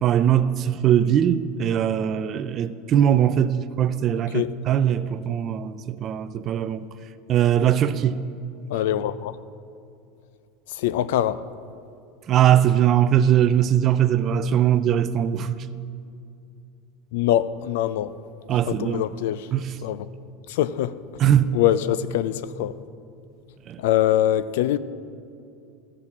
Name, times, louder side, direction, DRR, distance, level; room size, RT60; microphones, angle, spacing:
voice 1, 0.0-6.8 7.3-8.2 12.3-15.7 18.5-19.1 19.5-19.8 21.2-21.5 23.7-23.8, right 10 dB, 30° right, 0.4 m, -21 dB
voice 2, 8.7-9.3 10.8-11.4 17.1-18.1 18.6-19.5 19.8-20.1 20.5-20.9 21.5-22.7 23.8-24.8, left 12 dB, 75° left, 0.5 m, -23 dB
15.0 x 6.7 x 7.2 m
supercardioid pair, 170°, 0 cm